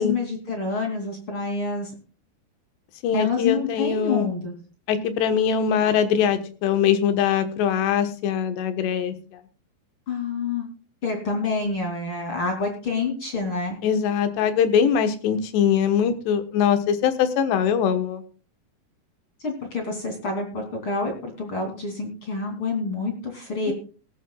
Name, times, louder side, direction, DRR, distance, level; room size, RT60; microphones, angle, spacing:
voice 1, 0.0-1.9 3.1-4.6 10.1-10.7 11.0-13.8 19.4-23.7, left 4 dB, 35° left, 2 dB, 3.2 m, -27 dB
voice 2, 3.0-4.3 4.9-9.2 13.8-18.2, left 8 dB, 80° left, 9 dB, 3.4 m, -22 dB
18.0 x 14.5 x 2.3 m, 0.37 s
omnidirectional pair, 4.9 m